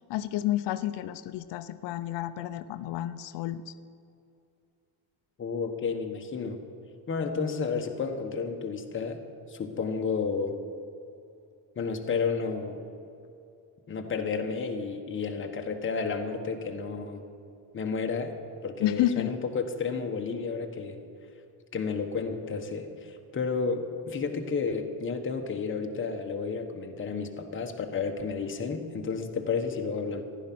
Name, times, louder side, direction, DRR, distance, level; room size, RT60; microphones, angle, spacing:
voice 1, 0.1-3.7 18.8-19.3, left 13 dB, 80° left, 12 dB, 0.6 m, -30 dB
voice 2, 5.4-6.6 7.1-9.2 9.5-10.5 11.8-12.8 13.9-17.2 17.7-18.3 18.6-21.0 21.7-30.2, left 5 dB, 30° left, 4 dB, 1.1 m, -31 dB
14.5 x 11.5 x 6.0 m, 2.6 s
cardioid pair, 165°, 42 cm